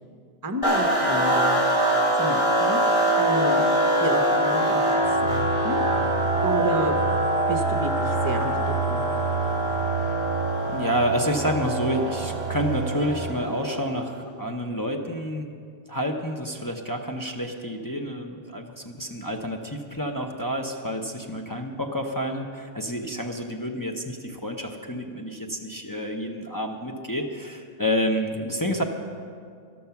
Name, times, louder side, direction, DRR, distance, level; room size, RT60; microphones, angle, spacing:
voice 1, 0.4-1.6 2.1-2.8 3.2-3.6 4.0-5.8 6.4-7.0 7.5-9.3, right 2 dB, 20° right, 5 dB, 0.8 m, -31 dB
sound 1, 0.6-14.0, right 1 dB, 50° left, 3.7 m, -24 dB
sound 2, 5.0-13.3, right 5 dB, 85° right, 0.9 m, -31 dB
voice 2, 10.7-15.5 15.9-28.8, equal, 20° left, 1 dB, 0.7 m, -29 dB
12.5 x 12.5 x 5.9 m, 2.2 s
omnidirectional pair, 1.2 m